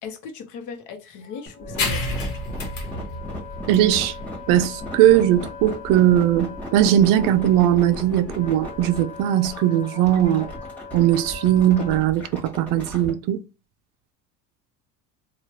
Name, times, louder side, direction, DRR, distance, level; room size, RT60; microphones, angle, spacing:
voice 1, 0.0-2.0, left 5 dB, 55° left, 0.8 m, -37 dB
Wind instrument woodwind instrument, 1.2-12.0, left 6 dB, 20° left, 0.5 m, -41 dB
sound 1, 1.5-13.1, equal, 5° left, 1.3 m, -36 dB
sound 2, 1.8-8.9, left 2 dB, 90° left, 1.2 m, -32 dB
voice 2, 3.7-4.1 4.5-10.4 10.9-13.4, right 12 dB, 60° right, 0.5 m, -19 dB
3.1 x 2.3 x 2.8 m
cardioid pair, 135°, 37 cm